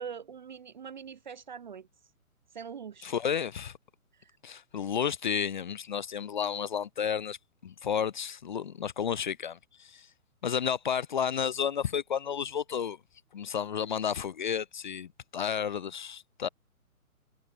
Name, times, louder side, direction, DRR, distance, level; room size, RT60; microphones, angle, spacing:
voice 1, 0.0-1.9 2.5-3.1 4.1-4.6, right 7 dB, 30° right, 0.7 m, -43 dB
voice 2, 3.0-3.7 4.4-7.4 7.6-10.1 10.4-13.0 13.3-16.5, left 7 dB, 35° left, 0.8 m, -32 dB
figure-of-eight pair, 130°, 44 cm